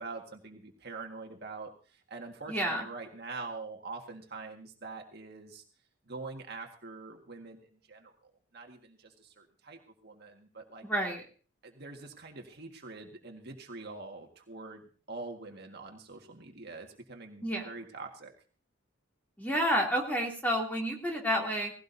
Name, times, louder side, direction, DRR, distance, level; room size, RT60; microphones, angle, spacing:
voice 1, 0.0-5.6 6.1-8.1 8.5-10.9 11.6-18.3, right 3 dB, 50° right, 2 dB, 1.8 m, -44 dB
voice 2, 2.5-2.9 10.8-11.2 17.4-17.7 19.4-21.7, equal, 10° left, -1 dB, 2.9 m, -30 dB
18.0 x 16.5 x 2.7 m, 0.38 s
head